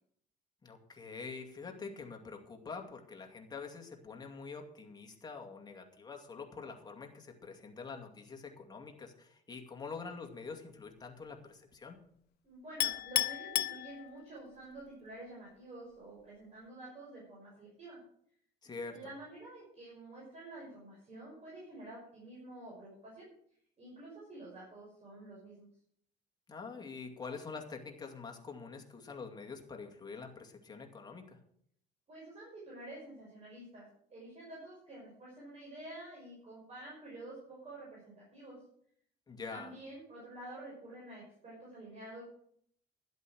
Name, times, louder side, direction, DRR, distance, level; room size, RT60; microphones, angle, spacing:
voice 1, 0.6-12.0 18.6-19.0 26.5-31.4 39.3-39.7, left 4 dB, 25° left, 2 dB, 2.3 m, -46 dB
voice 2, 12.4-18.0 18.9-23.3 23.8-25.7 32.1-33.9 34.1-38.6 39.5-42.2, right 1 dB, 40° right, -5 dB, 5.9 m, -49 dB
Chink clink, 12.8-14.5, left 15 dB, 70° left, 0.6 m, -33 dB
11.5 x 8.1 x 6.3 m, 0.66 s
cardioid pair, 110°, 17 cm